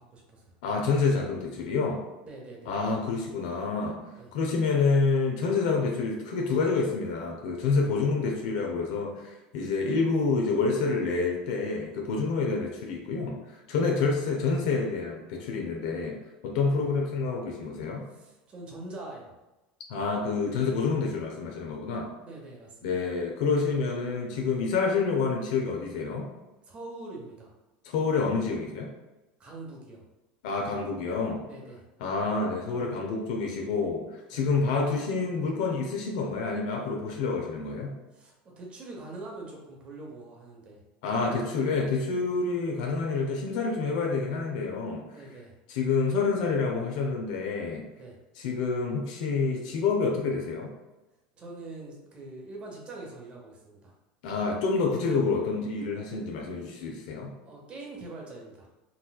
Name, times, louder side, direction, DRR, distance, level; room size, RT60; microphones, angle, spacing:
voice 1, 0.1-0.5 2.2-2.7 4.1-4.3 16.6-16.9 18.1-19.3 22.0-22.9 26.7-27.5 29.4-30.0 31.5-31.8 34.3-34.4 38.1-40.8 45.0-45.5 47.9-48.2 51.3-53.9 57.4-58.7, right 2 dB, 30° right, -1 dB, 0.9 m, -44 dB
voice 2, 0.6-2.0 2.7-4.0 4.3-16.1 16.4-18.0 19.9-22.1 22.8-26.3 27.8-28.9 30.4-31.4 32.0-34.0 34.3-38.0 41.0-45.1 45.7-47.8 48.4-50.7 54.2-57.3, left 4 dB, 75° left, 0 dB, 0.6 m, -28 dB
4.0 x 2.4 x 2.3 m, 1.0 s
supercardioid pair, 130°, 4 cm